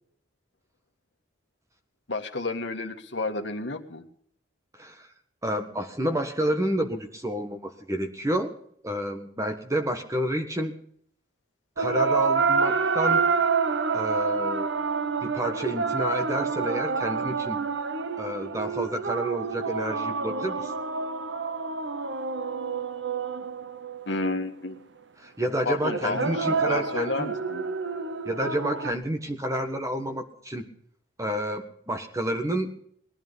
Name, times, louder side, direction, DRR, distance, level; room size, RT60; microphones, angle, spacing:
voice 1, 2.1-4.0 24.1-24.8 25.6-27.7, left 3 dB, 65° left, 5 dB, 1.7 m, -31 dB
voice 2, 5.4-8.5 8.8-10.7 11.8-13.2 13.9-14.7 15.2-17.6 18.2-20.7 25.2-27.3 28.2-30.7 31.2-32.8, right 1 dB, 15° right, 6 dB, 1.5 m, -29 dB
sound 1, 11.8-24.3 25.9-28.9, right 5 dB, 65° right, 0.9 m, -28 dB
19.5 x 11.0 x 5.4 m, 0.64 s
head